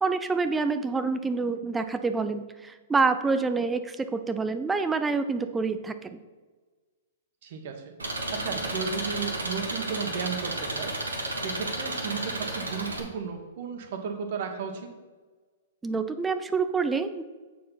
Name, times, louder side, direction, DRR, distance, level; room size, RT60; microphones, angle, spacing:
voice 1, 0.0-6.2 15.8-17.2, right 4 dB, 10° right, 9 dB, 0.5 m, -27 dB
voice 2, 7.4-7.7 8.3-10.9 11.3-14.9, right 6 dB, 55° right, 4 dB, 1.4 m, -34 dB
Engine, 8.0-13.0, right 2 dB, 85° right, 1.5 m, -32 dB
7.3 x 4.5 x 5.8 m, 1.3 s
hypercardioid pair, 115°, 0 cm